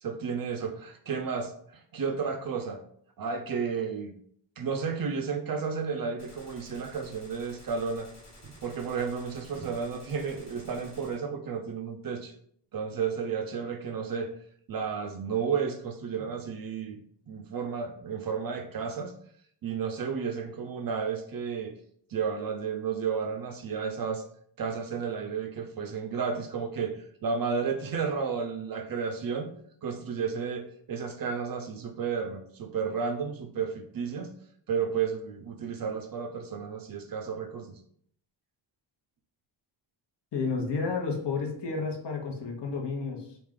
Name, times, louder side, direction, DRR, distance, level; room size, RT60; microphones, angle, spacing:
voice 1, 0.0-2.8 3.2-4.1 4.6-8.1 8.4-12.3 12.7-14.3 14.7-17.0 17.3-19.1 19.6-21.7 22.1-24.2 24.6-29.5 29.8-34.3 34.7-37.8, right 6 dB, 45° right, 5 dB, 0.5 m, -32 dB
Gunshot gunfire, 6.2-11.2, left 1 dB, 30° left, 1.3 m, -52 dB
voice 2, 40.3-43.3, left 4 dB, 55° left, 1 dB, 0.9 m, -31 dB
3.3 x 2.4 x 3.6 m, 0.65 s
cardioid pair, 95°, 50 cm